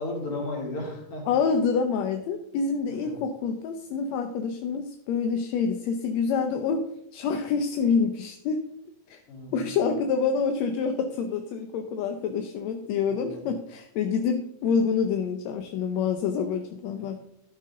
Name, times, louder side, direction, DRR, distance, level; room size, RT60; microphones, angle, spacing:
voice 1, 0.0-1.3 2.9-3.2 9.3-9.6 13.1-13.5, left 2 dB, 45° left, -1 dB, 3.8 m, -34 dB
voice 2, 1.3-8.6 9.1-9.2 9.5-17.2, left 5 dB, 70° left, 6 dB, 1.9 m, -27 dB
12.5 x 9.3 x 3.8 m, 0.77 s
omnidirectional pair, 3.5 m